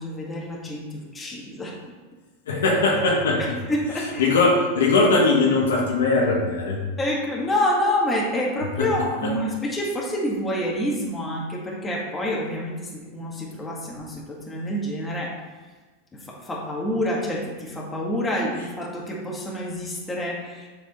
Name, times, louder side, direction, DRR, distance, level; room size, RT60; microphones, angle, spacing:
voice 1, 0.0-1.8 3.7-4.4 7.0-15.4 16.1-20.7, left 1 dB, 15° left, -3 dB, 1.6 m, -27 dB
voice 2, 2.5-3.6 4.2-6.8 8.8-8.9 9.2-9.3, left 3 dB, 90° left, -2 dB, 1.7 m, -20 dB
7.4 x 4.9 x 4.2 m, 1.3 s
supercardioid pair, 125°, 0 cm